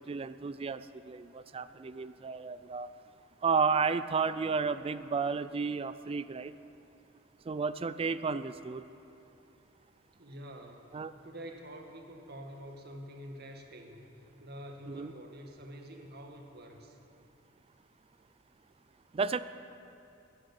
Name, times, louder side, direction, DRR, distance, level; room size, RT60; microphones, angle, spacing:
voice 1, 0.0-2.9 3.4-6.5 7.5-8.9 10.9-11.1 14.9-15.1 19.1-19.4, right 5 dB, 30° right, 14 dB, 0.4 m, -32 dB
voice 2, 10.1-17.0, equal, 55° right, 2 dB, 1.8 m, -47 dB
13.5 x 10.0 x 9.2 m, 2.8 s
head